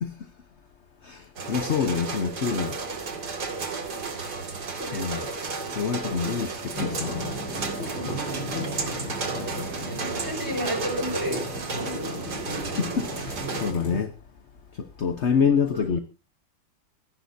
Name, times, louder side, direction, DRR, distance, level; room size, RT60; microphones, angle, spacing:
voice 1, 1.0-2.8 4.9-5.2 5.7-7.3 12.6-14.1 14.7-16.0, left 6 dB, 45° left, 1.0 m, -27 dB
sound 1, 1.4-13.7, right 4 dB, 55° right, 2.8 m, -33 dB
voice 2, 4.8-5.3 9.8-12.2 15.3-15.9, equal, 10° right, 6.6 m, -33 dB
sound 2, 6.7-14.0, left 1 dB, 70° left, 7.3 m, -35 dB
28.5 x 11.0 x 2.7 m
omnidirectional pair, 2.2 m